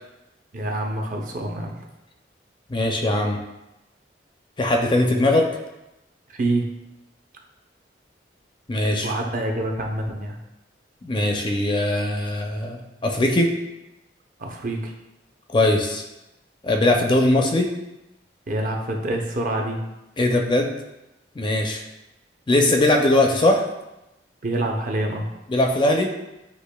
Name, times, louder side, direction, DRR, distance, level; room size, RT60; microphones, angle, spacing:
voice 1, 0.5-1.8 6.3-6.6 9.0-10.4 14.4-14.9 18.5-19.8 24.4-25.3, right 1 dB, 45° right, 1 dB, 0.6 m, -26 dB
voice 2, 2.7-3.4 4.6-5.5 8.7-9.1 11.0-13.5 15.5-16.0 16.6-17.7 20.2-20.8 21.4-21.8 22.5-23.6 25.5-26.1, left 1 dB, 25° left, 2 dB, 0.4 m, -20 dB
8.2 x 2.8 x 2.2 m, 0.96 s
head